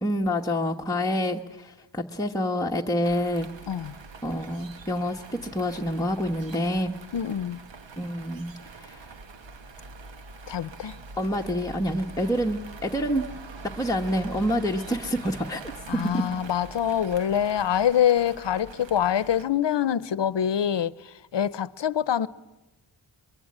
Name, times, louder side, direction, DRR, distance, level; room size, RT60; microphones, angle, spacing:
voice 1, 0.0-3.5 4.2-7.0 8.0-9.1 11.2-13.3 13.8-16.2, equal, 10° left, 1.2 m, -27 dB
sound 1, 3.0-19.5, right 3 dB, 85° right, 1.4 m, -44 dB
voice 2, 7.1-7.6 10.5-10.9 15.9-20.9 21.3-22.3, left 9 dB, 75° left, 0.8 m, -25 dB
24.0 x 23.0 x 8.7 m
wide cardioid pair, 110°, 43 cm